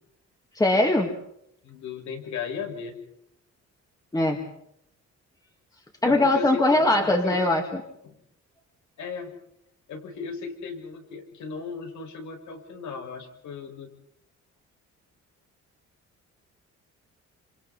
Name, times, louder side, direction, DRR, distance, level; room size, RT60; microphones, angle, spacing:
voice 1, 0.6-1.1 4.1-4.4 6.0-7.6, left 2 dB, 10° left, 2 dB, 2.2 m, -21 dB
voice 2, 1.6-3.0 6.0-7.4 8.0-8.1 9.0-9.3 9.9-13.9, left 5 dB, 75° left, 4 dB, 5.6 m, -36 dB
29.0 x 27.5 x 4.2 m, 0.76 s
cardioid pair, 150°, 29 cm